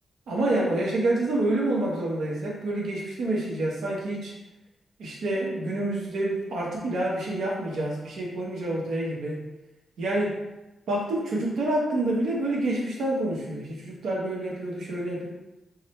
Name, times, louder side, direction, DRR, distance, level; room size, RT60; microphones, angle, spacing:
voice 1, 0.3-4.3 5.0-9.4 10.0-10.3 10.9-15.3, right 1 dB, 85° right, -3 dB, 1.0 m, -27 dB
3.5 x 2.1 x 4.3 m, 0.98 s
cardioid pair, 75°, 0 cm